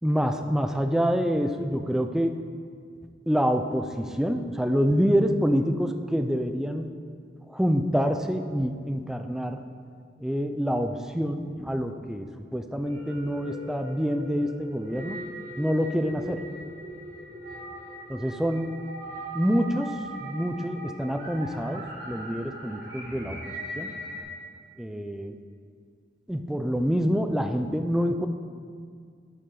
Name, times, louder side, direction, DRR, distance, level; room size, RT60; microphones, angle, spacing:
voice 1, 0.0-2.4 3.3-6.9 7.5-9.6 10.2-12.3 12.5-15.2 15.6-16.4 18.1-18.7 19.3-23.4 23.8-23.9 24.8-25.4 26.3-28.3, equal, 5° right, 6 dB, 0.3 m, -26 dB
sound 1, 12.8-24.2, right 1 dB, 65° right, 1.7 m, -40 dB
8.2 x 6.8 x 3.8 m, 2.2 s
head